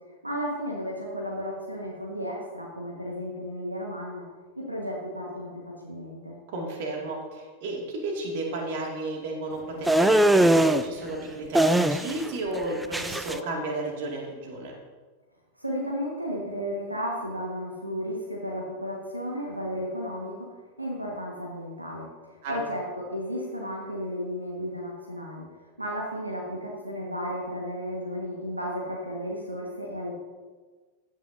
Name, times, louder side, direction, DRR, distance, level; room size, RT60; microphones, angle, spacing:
voice 1, 0.2-4.2 4.6-6.3 15.6-20.5 20.8-25.5 25.8-30.1, equal, 85° right, -1 dB, 1.5 m, -33 dB
voice 2, 6.5-14.7 22.4-22.6, right 2 dB, 50° right, 0 dB, 2.2 m, -33 dB
sound 1, 9.9-10.8 11.5-12.3 12.5-13.4, right 1 dB, 5° right, 0.4 m, -20 dB
15.5 x 9.0 x 2.7 m, 1.4 s
figure-of-eight pair, 90°, 0 cm